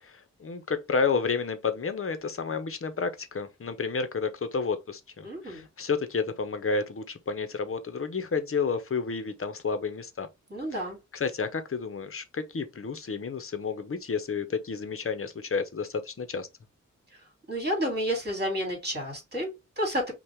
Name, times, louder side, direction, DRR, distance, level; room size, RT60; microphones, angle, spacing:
voice 1, 0.0-10.3 11.1-16.5, left 5 dB, 45° left, 0.9 m, -31 dB
voice 2, 5.2-5.7 10.5-11.0 17.1-17.2 17.5-20.1, equal, 35° right, 3.0 m, -30 dB
5.6 x 2.4 x 3.5 m
wide cardioid pair, 95°, 30 cm